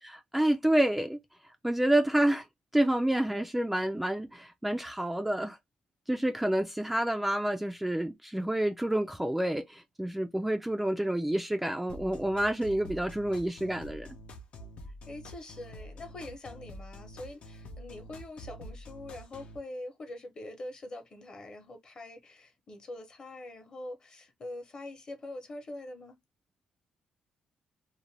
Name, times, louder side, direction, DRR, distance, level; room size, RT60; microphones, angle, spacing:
voice 1, 0.0-1.2 1.6-2.5 2.7-5.6 6.1-14.1, right 1 dB, 5° right, 0.3 m, -28 dB
sound 1, 11.9-19.6, equal, 60° left, 0.6 m, -47 dB
voice 2, 15.1-26.2, left 1 dB, 40° left, 0.9 m, -44 dB
2.5 x 2.1 x 3.1 m
cardioid pair, 105°, 2 cm